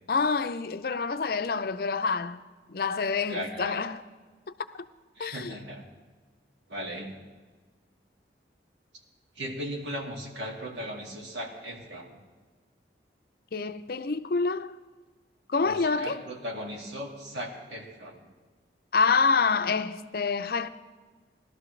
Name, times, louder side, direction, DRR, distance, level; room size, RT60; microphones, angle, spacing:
voice 1, 0.1-2.4 2.7-4.0 5.2-5.5 13.5-14.8 15.5-16.2 18.9-20.7, left 4 dB, 55° left, 0.5 m, -27 dB
voice 2, 3.3-3.8 5.2-5.8 6.7-7.1 9.4-12.2 15.6-18.3, equal, 80° right, 2.3 m, -37 dB
20.0 x 12.5 x 3.3 m
head